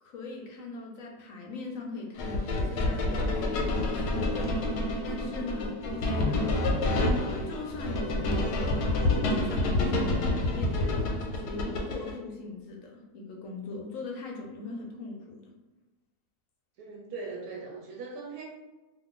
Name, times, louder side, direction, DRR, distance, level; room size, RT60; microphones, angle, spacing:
voice 1, 0.0-4.6 5.0-6.5 7.1-15.5, left 3 dB, 65° left, 0 dB, 0.9 m, -40 dB
sound 1, 2.2-12.1, left 2 dB, 85° left, 1.1 m, -28 dB
voice 2, 16.8-18.5, right 4 dB, 75° right, 0 dB, 1.0 m, -40 dB
2.5 x 2.5 x 3.6 m, 1.1 s
omnidirectional pair, 1.7 m